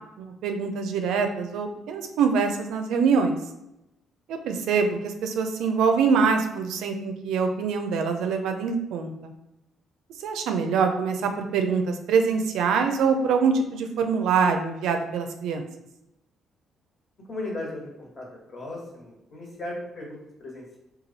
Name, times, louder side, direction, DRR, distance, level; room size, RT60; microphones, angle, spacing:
voice 1, 0.2-3.4 4.3-9.3 10.2-15.6, right 5 dB, 80° right, 5 dB, 0.4 m, -24 dB
voice 2, 17.3-20.8, left 2 dB, 45° left, -2 dB, 1.4 m, -37 dB
3.1 x 2.3 x 4.0 m, 0.89 s
supercardioid pair, 70°, 0 cm